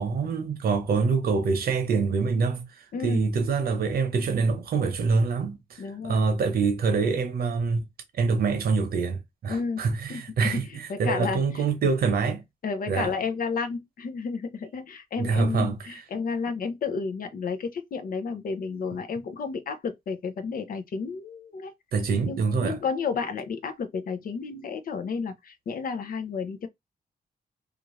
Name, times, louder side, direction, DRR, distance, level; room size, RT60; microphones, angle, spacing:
voice 1, 0.0-2.7 3.0-7.8 8.2-12.4 12.9-13.1 15.2-15.8 21.9-22.8, right 4 dB, 80° right, 0.8 m, -25 dB
voice 2, 2.9-3.2 5.8-6.2 9.5-9.8 10.1-11.7 12.6-21.7 22.3-26.7, left 5 dB, 70° left, 0.6 m, -32 dB
2.5 x 2.5 x 3.1 m
cardioid pair, 75°, 15 cm